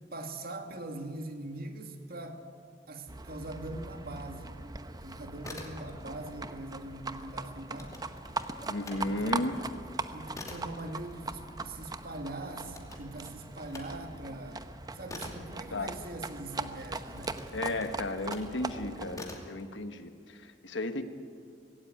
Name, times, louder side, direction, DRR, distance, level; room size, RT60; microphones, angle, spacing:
voice 1, 0.1-2.4 2.9-4.5 5.0-8.0 9.0-9.5 10.1-14.7 14.9-17.5, right 2 dB, 55° right, 5 dB, 2.1 m, -42 dB
Livestock farm animals working animals, 3.1-19.2, right 3 dB, 20° right, 0.8 m, -40 dB
sound 1, 5.4-6.3 6.5-9.0 9.4-16.5 17.1-18.6 19.1-19.6, left 2 dB, 20° left, 2.5 m, -47 dB
voice 2, 8.6-9.6 15.7-16.0 17.5-21.0, left 2 dB, 90° left, 9 dB, 1.4 m, -34 dB
20.5 x 16.5 x 9.3 m, 2.2 s
head